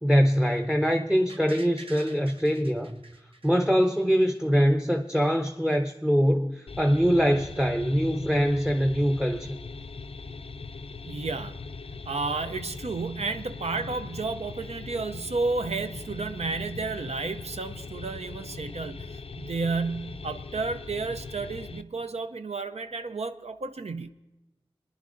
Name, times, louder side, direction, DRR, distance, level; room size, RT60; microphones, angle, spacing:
voice 1, 0.0-3.0 3.4-9.5, equal, 5° right, 0.6 m, -23 dB
sound 1, 1.3-4.2 4.6-4.7, right 2 dB, 60° right, 0.8 m, -48 dB
sound 2, 6.7-21.8, left 4 dB, 65° left, 0.4 m, -40 dB
voice 2, 11.1-11.6 12.1-24.1, right 3 dB, 85° right, 0.5 m, -32 dB
25.0 x 10.5 x 2.5 m
wide cardioid pair, 45°, 11 cm